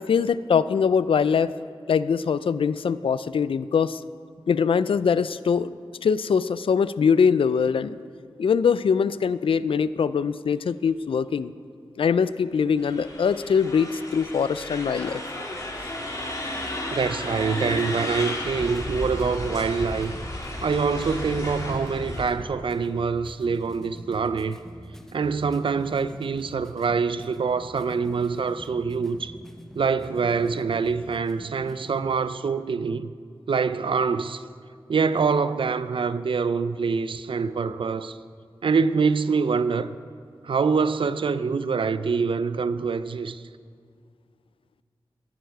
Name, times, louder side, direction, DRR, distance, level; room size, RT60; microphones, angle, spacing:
voice 1, 0.0-1.5 1.9-4.0 4.5-5.7 6.0-8.0 8.4-11.5 12.0-15.2, left 6 dB, 85° left, 0.4 m, -22 dB
sound 1, 12.8-22.3, left 1 dB, 40° left, 2.2 m, -33 dB
voice 2, 16.9-20.1 20.6-24.6 25.1-29.3 29.8-33.1 33.5-34.4 34.9-38.2 38.6-39.9 40.4-43.4, right 5 dB, 70° right, 0.5 m, -25 dB
sound 2, 17.6-32.2, equal, 5° left, 1.0 m, -46 dB
13.0 x 12.5 x 4.7 m
wide cardioid pair, 70°, 9 cm